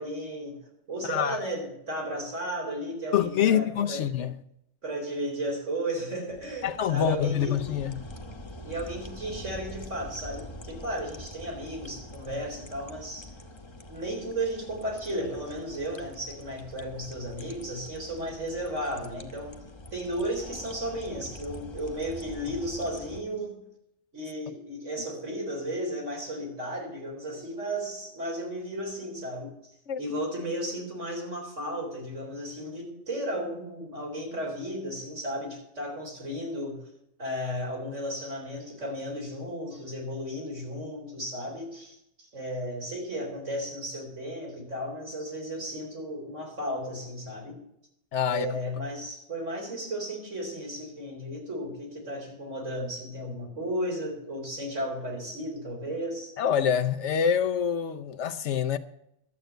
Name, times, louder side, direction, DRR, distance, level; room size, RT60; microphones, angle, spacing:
voice 1, 0.0-4.1 4.8-7.8 8.6-13.4 13.9-19.6 19.9-23.6 24.1-29.7 30.0-36.8 37.2-47.6 48.2-56.3, equal, 80° right, 4.3 m, -34 dB
voice 2, 1.0-1.4 3.1-4.3 6.6-7.9 29.9-30.0 48.1-48.6 56.4-58.8, left 8 dB, 70° left, 1.0 m, -26 dB
sound 1, 6.3-23.2, left 1 dB, 25° left, 1.0 m, -45 dB
12.0 x 7.8 x 7.9 m
omnidirectional pair, 1.3 m